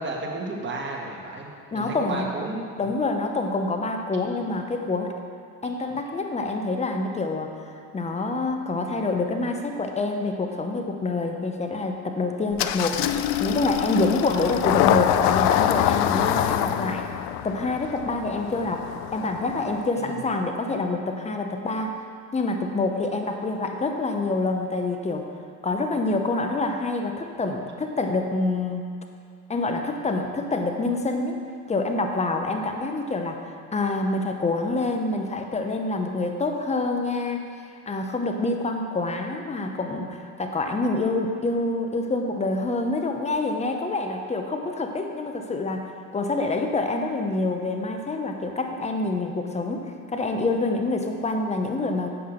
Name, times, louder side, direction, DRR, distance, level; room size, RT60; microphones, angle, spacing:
voice 1, 0.0-1.5 1.7-2.7 20.0-20.2, right 2 dB, 25° right, -1 dB, 1.6 m, -32 dB
voice 2, 1.7-2.3 2.8-5.1 5.6-7.5 7.9-13.1 13.4-17.1 17.4-18.8 19.1-21.9 22.3-25.3 25.6-28.9 29.5-33.4 33.7-37.5 37.9-52.1, left 2 dB, 15° left, 4 dB, 0.8 m, -26 dB
Engine starting, 12.6-19.9, left 11 dB, 55° left, 0.5 m, -25 dB
8.0 x 5.5 x 6.5 m, 2.1 s
supercardioid pair, 105°, 47 cm